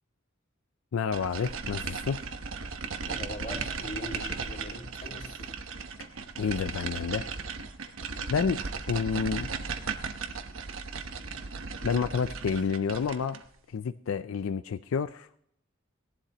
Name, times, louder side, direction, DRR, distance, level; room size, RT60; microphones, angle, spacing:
voice 1, 0.9-2.2 6.0-6.1 6.4-7.2 8.3-9.5 11.8-13.4 13.7-15.3, left 6 dB, 90° left, 11 dB, 0.4 m, -29 dB
sound 1, 1.1-13.5, right 5 dB, 80° right, 1.0 m, -36 dB
voice 2, 3.1-5.5, left 1 dB, 45° left, -1 dB, 3.0 m, -41 dB
17.5 x 11.5 x 3.0 m, 0.70 s
head